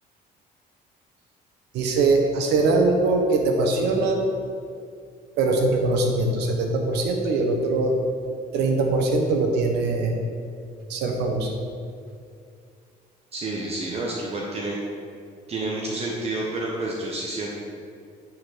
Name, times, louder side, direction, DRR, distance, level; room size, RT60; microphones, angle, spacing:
voice 1, 1.7-4.2 5.4-8.0 8.5-10.2 10.9-11.5, right 3 dB, 85° right, 2 dB, 1.2 m, -22 dB
voice 2, 13.3-14.8 15.5-17.5, right 2 dB, 35° right, -3 dB, 1.1 m, -29 dB
8.7 x 4.7 x 5.0 m, 2.3 s
cardioid pair, 110°, 17 cm